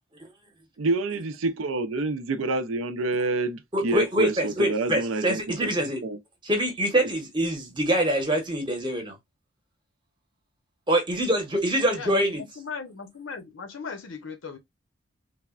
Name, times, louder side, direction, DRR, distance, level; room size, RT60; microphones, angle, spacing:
voice 1, 0.8-5.7 6.0-6.2, right 3 dB, 80° right, 0.5 m, -27 dB
voice 2, 3.7-6.0 6.4-9.2 10.9-12.4, equal, 25° right, 0.8 m, -25 dB
voice 3, 11.9-14.6, left 5 dB, 80° left, 0.7 m, -38 dB
3.3 x 2.1 x 2.3 m
head